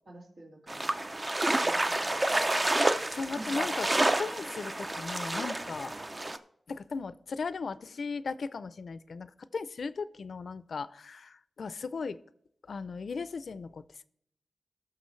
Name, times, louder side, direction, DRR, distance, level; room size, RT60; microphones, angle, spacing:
voice 1, 0.1-0.9 1.6-2.5 3.2-3.6, right 1 dB, 80° right, -3 dB, 2.3 m, -49 dB
sound 1, 0.7-6.4, right 1 dB, 25° right, 0.5 m, -29 dB
voice 2, 3.1-5.9 6.7-12.2 12.7-14.0, left 4 dB, 70° left, 15 dB, 0.5 m, -37 dB
19.0 x 6.5 x 3.2 m, 0.70 s
wide cardioid pair, 110°, 0 cm